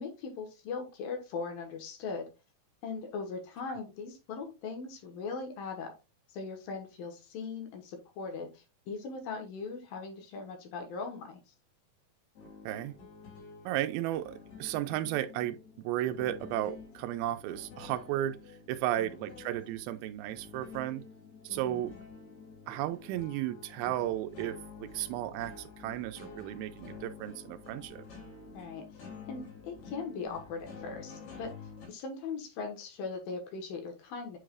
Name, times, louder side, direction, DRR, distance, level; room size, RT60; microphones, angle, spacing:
voice 1, 0.0-2.3 2.8-5.9 6.3-11.4 19.0-19.1 21.5-21.9 28.5-28.8 29.3-31.5 31.9-34.4, left 4 dB, 75° left, 3.0 m, -39 dB
sound 1, 12.4-31.9, left 5 dB, 90° left, 4.9 m, -49 dB
voice 2, 13.7-15.6 15.8-18.4 18.7-21.0 21.4-21.9 22.7-28.0, right 13 dB, 85° right, 2.4 m, -34 dB
8.3 x 4.8 x 2.4 m
omnidirectional pair, 4.3 m